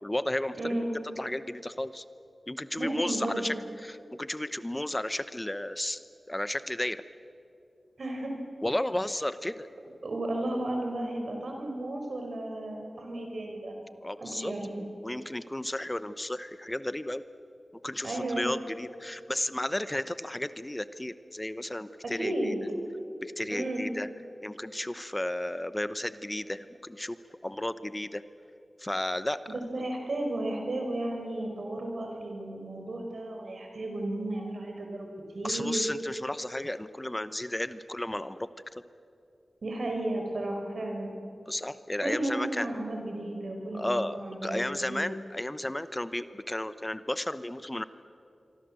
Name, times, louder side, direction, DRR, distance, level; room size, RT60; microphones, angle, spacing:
voice 1, 0.0-0.8 1.2-2.0 2.5-3.5 3.8-6.0 6.3-7.0 8.6-9.7 14.0-14.5 15.0-17.2 17.8-22.5 23.2-24.1 24.4-27.2 27.4-28.2 28.8-29.4 35.4-38.5 41.5-42.7 43.7-47.8, left 1 dB, 20° left, 13 dB, 0.8 m, -33 dB
voice 2, 0.6-0.9 2.8-3.4 8.0-8.3 10.0-13.8 14.2-14.8 18.0-18.5 22.0-22.6 23.5-23.9 29.5-35.1 35.3-35.8 39.6-41.1 42.0-45.1, right 1 dB, 75° right, 2 dB, 5.4 m, -33 dB
26.5 x 23.5 x 7.7 m, 2.7 s
cardioid pair, 55°, 0 cm